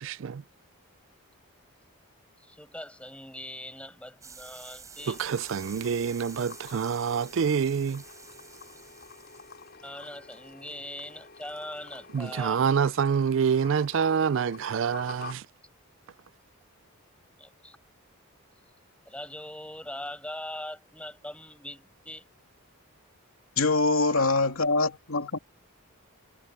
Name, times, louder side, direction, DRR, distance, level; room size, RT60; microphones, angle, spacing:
voice 1, 0.0-0.4 5.1-8.0 12.1-15.4, right 6 dB, 55° right, 0.3 m, -26 dB
voice 2, 2.4-5.2 9.8-12.6 17.4-17.8 19.1-22.3, left 1 dB, 5° left, 5.5 m, -41 dB
sound 1, 4.2-9.7, right 5 dB, 15° right, 7.1 m, -49 dB
sound 2, 5.0-15.3, left 4 dB, 45° left, 6.2 m, -49 dB
voice 3, 23.6-25.4, left 3 dB, 70° left, 3.0 m, -24 dB
head